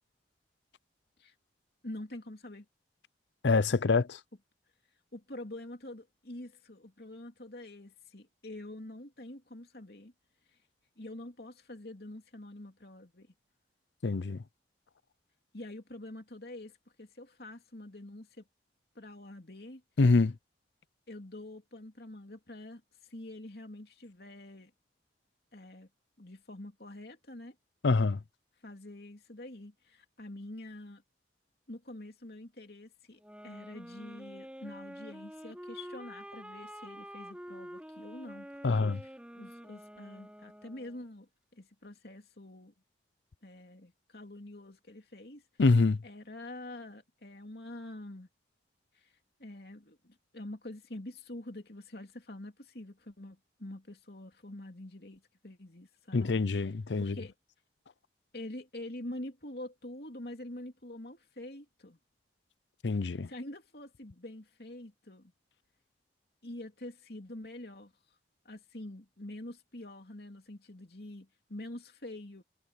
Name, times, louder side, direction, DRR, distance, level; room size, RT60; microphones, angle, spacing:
voice 1, 1.8-2.7 5.1-10.1 11.0-13.3 15.5-18.4 18.9-19.8 21.1-24.7 25.5-25.9 26.2-27.5 28.6-31.0 31.7-42.7 43.4-45.4 46.0-48.3 48.9-49.1 49.4-56.3 57.0-57.3 58.3-62.0 63.3-65.3 66.4-67.9 68.4-72.4, left 1 dB, 60° left, 3.1 m, -46 dB
voice 2, 3.4-4.2 14.0-14.4 20.0-20.3 27.8-28.2 38.6-39.0 45.6-46.0 56.1-57.2 62.8-63.3, left 3 dB, 90° left, 0.6 m, -25 dB
sound 1, 33.2-41.0, equal, 5° right, 3.4 m, -47 dB
head